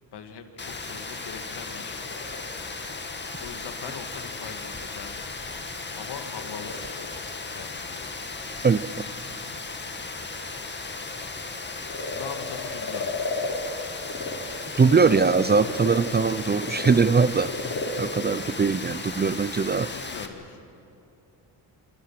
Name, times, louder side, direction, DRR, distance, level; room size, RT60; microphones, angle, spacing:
voice 1, 0.1-2.0 3.4-5.3 6.0-7.1 7.5-8.1 12.1-13.2 19.7-20.6, left 7 dB, 65° left, 7 dB, 2.5 m, -41 dB
Rain, 0.6-20.3, left 3 dB, 25° left, 2.2 m, -36 dB
Frog, 1.7-14.3 14.7-19.4, left 3 dB, 45° left, 5.9 m, -37 dB
voice 2, 14.8-17.5 18.0-19.9, right 5 dB, 25° right, 15 dB, 0.6 m, -21 dB
27.0 x 26.0 x 6.0 m, 2.8 s
cardioid pair, 80°, 44 cm